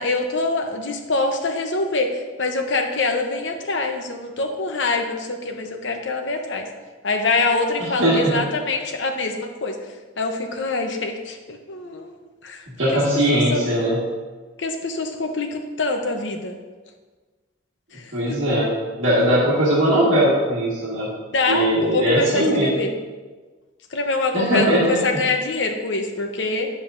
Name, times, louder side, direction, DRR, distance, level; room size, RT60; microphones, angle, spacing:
voice 1, 0.0-6.7 7.0-9.8 10.2-12.1 12.4-12.6 12.9-13.0 13.3-13.7 14.6-16.6 17.9-18.4 21.3-22.9 23.9-26.7, left 3 dB, 70° left, 4 dB, 0.8 m, -24 dB
voice 2, 7.8-8.4 12.8-14.0 18.1-18.7 19.0-21.1 21.5-22.9 24.3-24.9 25.1-25.2, right 1 dB, 80° right, -7 dB, 1.7 m, -20 dB
9.1 x 7.4 x 2.6 m, 1.3 s
head